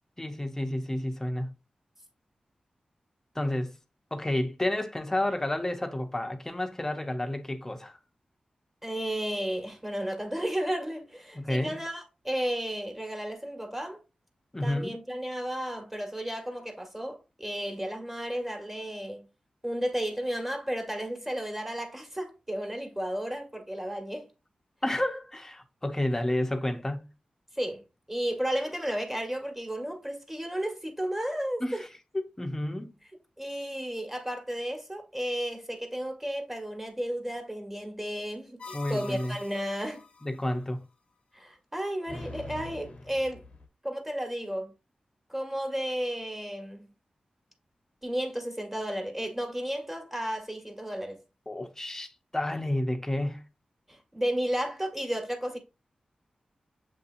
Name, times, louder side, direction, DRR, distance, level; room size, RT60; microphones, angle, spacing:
voice 1, 0.2-1.5 3.3-3.7 4.1-8.0 11.3-11.8 14.5-15.0 24.8-27.1 31.6-31.9 32.1-32.9 38.7-39.3 40.2-40.8 51.5-53.4, left 1 dB, 15° left, 0.8 m, -30 dB
voice 2, 8.8-14.0 14.6-19.2 19.6-24.3 26.1-26.2 27.5-27.8 28.1-31.8 33.4-40.0 41.3-43.4 43.8-44.7 45.3-46.9 48.0-51.2 53.9-55.6, equal, 10° right, 1.4 m, -33 dB
sound 1, 38.6-40.3 42.1-43.6, left 3 dB, 55° left, 0.8 m, -44 dB
7.5 x 2.7 x 2.6 m
wide cardioid pair, 70°, 2 cm